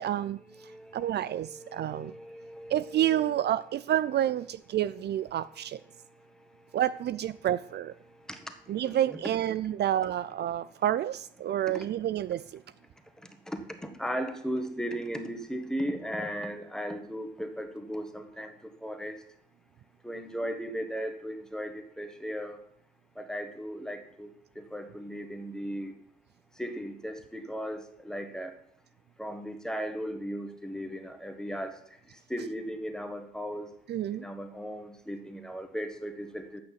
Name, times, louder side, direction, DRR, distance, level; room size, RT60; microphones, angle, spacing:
voice 1, 0.0-2.1 2.7-5.8 6.7-8.0 8.7-12.6 33.9-34.3, right 11 dB, 60° right, 15 dB, 0.4 m, -29 dB
voice 2, 0.5-3.3 5.9-6.8 8.1-9.2 13.5-19.2 20.0-22.6 23.1-24.3 24.5-25.9 26.5-28.5 29.2-31.8 32.1-33.7 34.1-36.6, equal, 5° left, 7 dB, 1.5 m, -37 dB
8.8 x 6.3 x 7.5 m, 0.68 s
cardioid pair, 90°, 20 cm